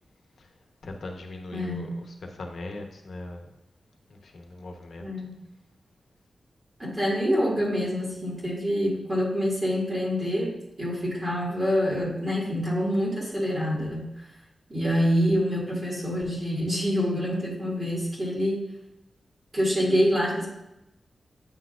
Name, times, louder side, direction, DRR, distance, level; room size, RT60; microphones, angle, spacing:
voice 1, 0.8-1.9 2.3-3.5 4.2-5.1, left 2 dB, 75° left, 3 dB, 0.9 m, -39 dB
voice 2, 1.5-2.0 5.0-5.3 6.8-14.2 14.7-18.6 19.5-20.5, equal, 30° right, -6 dB, 2.0 m, -26 dB
8.9 x 6.0 x 2.4 m, 0.91 s
wide cardioid pair, 130°, 0 cm